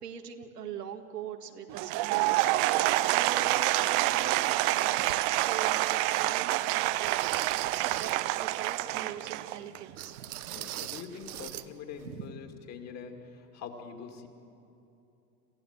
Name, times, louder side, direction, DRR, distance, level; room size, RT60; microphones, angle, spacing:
voice 1, 0.0-2.5 3.1-7.2 7.5-10.4 12.0-12.3, right 7 dB, 85° right, 4 dB, 1.9 m, -42 dB
Applause / Crowd, 1.7-9.9, right 17 dB, 30° right, 0.4 m, -27 dB
sound 1, 5.1-5.2 5.9-6.0 7.0-8.3 10.0-11.7 11.9-12.1 12.6-12.7, right 14 dB, 65° right, 1.0 m, -40 dB
voice 2, 10.5-14.3, left 6 dB, 35° left, 3 dB, 2.6 m, -44 dB
27.5 x 15.0 x 7.5 m, 2.9 s
hypercardioid pair, 110°, 47 cm